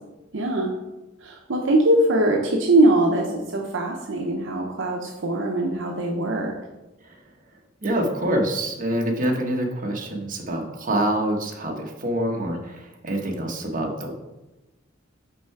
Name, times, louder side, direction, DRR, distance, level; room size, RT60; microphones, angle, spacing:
voice 1, 0.3-0.7 1.2-6.5, right 1 dB, 65° right, 1 dB, 0.8 m, -21 dB
voice 2, 7.8-14.1, right 1 dB, 45° right, 1 dB, 1.1 m, -26 dB
5.9 x 4.7 x 4.6 m, 1.0 s
head